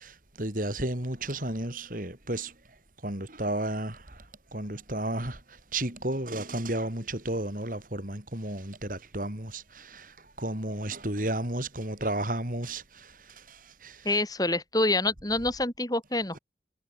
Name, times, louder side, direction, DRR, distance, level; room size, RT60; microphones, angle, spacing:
voice 1, 0.0-2.5 3.0-4.2 4.5-14.1, right 1 dB, 45° right, 4.3 m, -33 dB
voice 2, 14.0-16.4, left 2 dB, 20° left, 5.1 m, -27 dB
head